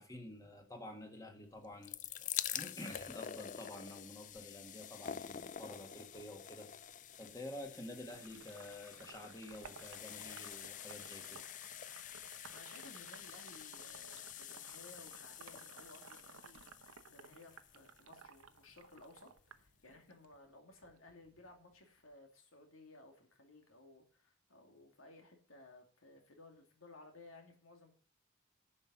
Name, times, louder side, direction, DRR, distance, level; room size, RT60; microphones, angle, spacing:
voice 1, 0.0-11.4, left 1 dB, 15° left, 3 dB, 1.6 m, -50 dB
sound 1, 1.6-18.6 19.4-19.5 19.7-19.8, left 10 dB, 40° left, 0.4 m, -47 dB
Sink (filling or washing), 8.1-20.4 20.7-22.1, right 5 dB, 90° right, 0.9 m, -57 dB
voice 2, 12.5-27.9, left 2 dB, 80° left, 3 dB, 2.5 m, -59 dB
10.5 x 5.5 x 7.3 m, 0.42 s
head